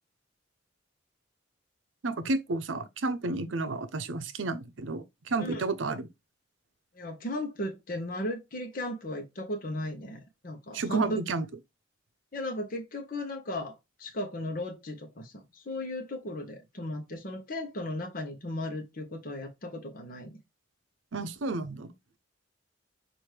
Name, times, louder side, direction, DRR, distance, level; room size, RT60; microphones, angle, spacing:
voice 1, 2.0-6.1 10.7-11.5 21.1-21.9, right 3 dB, 75° right, 0.6 m, -31 dB
voice 2, 6.9-11.2 12.3-20.4, left 1 dB, 45° left, 0.9 m, -36 dB
5.9 x 2.6 x 3.2 m
head